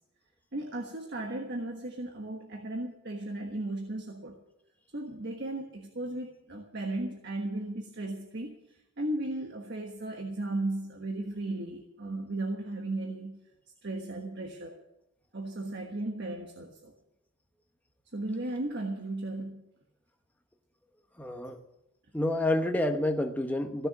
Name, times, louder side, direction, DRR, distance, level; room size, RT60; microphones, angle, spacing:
voice 1, 0.5-4.4 4.9-13.4 13.8-14.8 15.3-16.9 18.1-19.7, right 2 dB, 55° right, 3 dB, 1.4 m, -36 dB
voice 2, 21.2-21.6 22.1-23.9, left 1 dB, 10° left, 4 dB, 1.0 m, -28 dB
16.0 x 6.8 x 9.8 m, 0.86 s
head